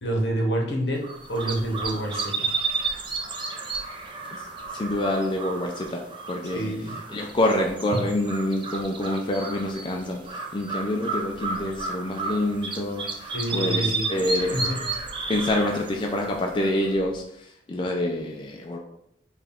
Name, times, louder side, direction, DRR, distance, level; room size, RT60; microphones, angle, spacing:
voice 1, 0.0-2.5 6.5-7.0 13.3-14.1 14.5-14.8, right 1 dB, 75° left, 0 dB, 1.0 m, -27 dB
sound 1, 1.0-17.1, right 4 dB, 30° right, 0.5 m, -32 dB
voice 2, 4.7-6.7 7.1-14.6 15.3-18.8, left 1 dB, 30° left, 1 dB, 0.3 m, -27 dB
4.7 x 2.3 x 3.4 m, 0.78 s
head